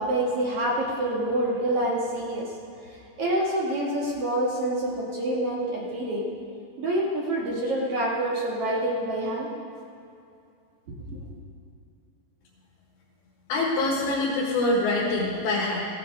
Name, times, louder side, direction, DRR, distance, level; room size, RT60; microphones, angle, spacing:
voice 1, 0.0-2.5 3.2-6.2 6.8-9.5 11.1-11.2, right 1 dB, 60° right, -5 dB, 1.5 m, -27 dB
voice 2, 13.5-15.9, left 2 dB, 85° left, -5 dB, 3.8 m, -25 dB
16.0 x 10.5 x 3.7 m, 2.5 s
omnidirectional pair, 5.0 m